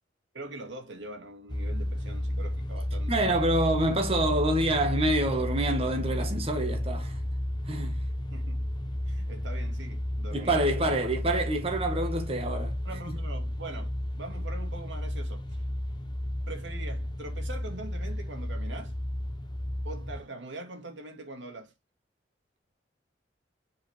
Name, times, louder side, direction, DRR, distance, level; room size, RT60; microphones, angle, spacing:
voice 1, 0.3-3.4 8.3-8.6 9.1-11.0 12.8-13.9 14.2-15.6 16.5-18.9 19.8-21.7, right 2 dB, 80° right, 2.6 m, -42 dB
sound 1, 1.5-20.2, left 1 dB, 25° left, 0.9 m, -32 dB
voice 2, 3.1-7.2 7.7-8.0 10.3-12.8 13.1-13.2, right 1 dB, 30° right, 1.6 m, -27 dB
7.0 x 5.0 x 3.4 m
head